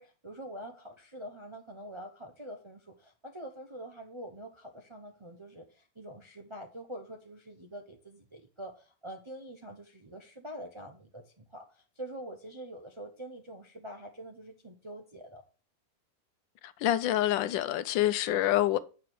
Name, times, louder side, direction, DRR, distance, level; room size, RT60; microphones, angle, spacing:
voice 1, 0.0-15.4, right 1 dB, 35° right, 0.5 m, -45 dB
voice 2, 16.8-18.8, left 13 dB, 85° left, 1.3 m, -26 dB
8.6 x 5.9 x 4.6 m
omnidirectional pair, 2.0 m